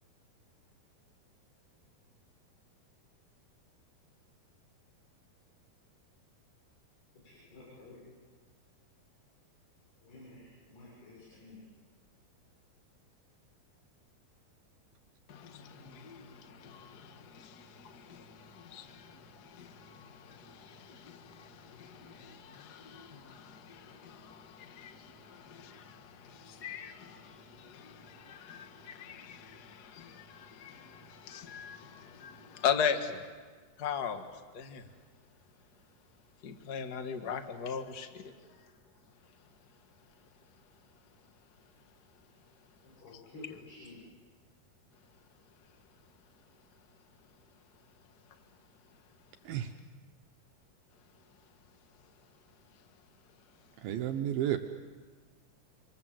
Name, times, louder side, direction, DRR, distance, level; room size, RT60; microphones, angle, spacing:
voice 1, 7.2-8.1 10.0-11.6 42.8-44.0, left 2 dB, 90° left, -4 dB, 8.8 m, -51 dB
voice 2, 15.3-33.2 33.8-34.2 34.5-34.8 36.4-38.3, left 7 dB, 50° left, 7 dB, 1.2 m, -40 dB
voice 3, 53.8-54.6, right 11 dB, 75° right, 6 dB, 2.6 m, -32 dB
27.0 x 27.0 x 7.8 m, 1.5 s
omnidirectional pair, 4.5 m